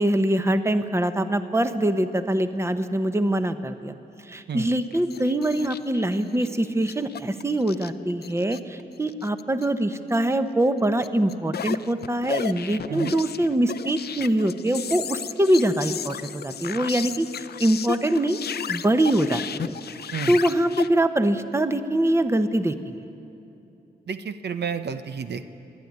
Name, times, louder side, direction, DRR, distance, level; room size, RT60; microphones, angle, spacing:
voice 1, 0.0-3.9 4.3-17.3 17.6-18.4 18.7-19.8 20.3-23.0, right 1 dB, 15° right, 9 dB, 0.9 m, -23 dB
sound 1, 4.7-6.6 6.9-8.8 9.1-9.6 9.9-10.2 11.0-20.9, left 8 dB, 65° left, 0.5 m, -34 dB
voice 2, 24.1-25.5, right 6 dB, 75° right, 10 dB, 0.8 m, -31 dB
27.0 x 11.5 x 9.5 m, 2.7 s
wide cardioid pair, 95°, 18 cm